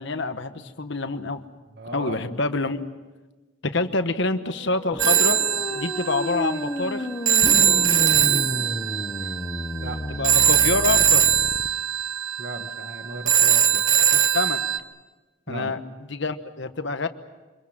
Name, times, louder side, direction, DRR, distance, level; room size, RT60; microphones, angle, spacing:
voice 1, 0.0-1.4 1.9-2.9 3.6-5.4 5.7-7.1 10.1-11.2 14.1-14.6 15.5-15.8 16.1-17.1, left 3 dB, 55° left, 9 dB, 1.2 m, -27 dB
voice 2, 1.7-2.2 9.2-9.3 9.8-10.2 12.4-13.8 15.5-15.7, right 2 dB, 50° right, 6 dB, 1.8 m, -36 dB
sound 1, 4.6-11.7, left 1 dB, 20° left, 1.0 m, -32 dB
sound 2, 4.9-6.4 7.4-9.8, equal, 10° right, 1.4 m, -37 dB
Telephone, 5.0-14.8, right 9 dB, 65° right, 1.3 m, -21 dB
25.0 x 22.5 x 7.5 m, 1.2 s
head